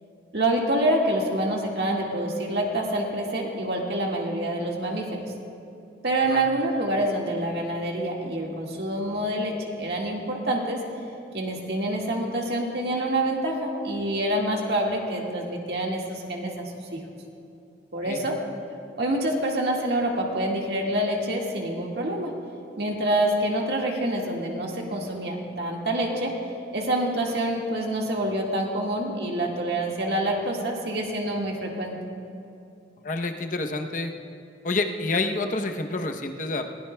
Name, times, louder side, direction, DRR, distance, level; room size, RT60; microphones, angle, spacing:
voice 1, 0.3-5.2 6.0-10.8 11.3-17.0 17.9-18.4 19.0-22.3 22.8-26.3 26.7-32.0, right 1 dB, 60° right, -1 dB, 1.8 m, -26 dB
voice 2, 33.0-34.1 34.6-36.6, left 2 dB, 45° left, 4 dB, 0.8 m, -28 dB
21.0 x 16.5 x 2.3 m, 2.7 s
head